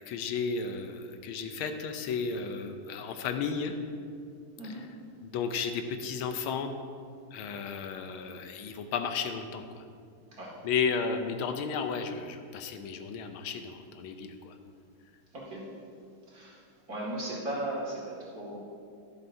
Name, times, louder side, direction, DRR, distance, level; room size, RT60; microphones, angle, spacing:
voice 1, 0.0-3.7 5.2-6.7 7.3-9.8 10.6-14.5, left 5 dB, 90° left, 7 dB, 1.6 m, -33 dB
voice 2, 15.3-15.7 16.3-16.6 16.9-18.6, right 1 dB, 45° right, -5 dB, 2.6 m, -37 dB
12.0 x 11.0 x 2.7 m, 2.3 s
omnidirectional pair, 2.3 m